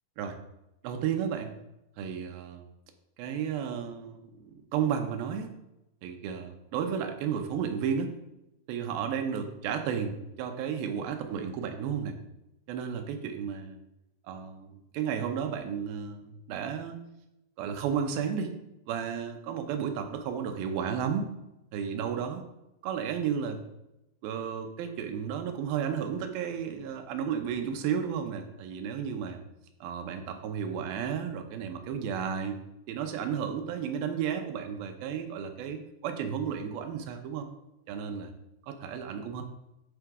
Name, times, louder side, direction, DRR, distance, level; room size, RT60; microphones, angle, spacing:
voice 1, 0.8-1.5 2.0-2.7 3.2-5.5 6.0-8.2 8.7-12.2 12.7-13.8 14.2-17.0 17.6-18.5 18.9-21.3 21.7-22.5 22.8-23.6 24.2-29.4 29.8-32.6 32.9-37.5 37.9-38.3 38.7-39.4, right 7 dB, 80° right, 6 dB, 2.6 m, -33 dB
11.5 x 3.9 x 4.7 m, 0.90 s
omnidirectional pair, 4.3 m